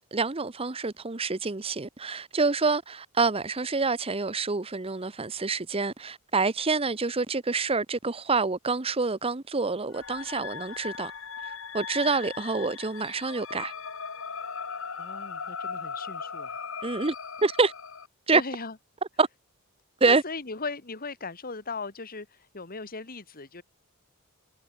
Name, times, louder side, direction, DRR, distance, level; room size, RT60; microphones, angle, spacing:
voice 1, 0.0-11.1 11.5-13.7 16.8-17.1 17.4-17.7 18.3-18.4 19.2-19.3 20.0-20.2, right 4 dB, 25° right, 0.9 m, -27 dB
sound 1, 9.9-18.1, left 6 dB, 60° left, 2.3 m, -38 dB
voice 2, 15.0-16.6 18.3-18.8 20.1-23.6, left 4 dB, 40° left, 1.9 m, -38 dB
head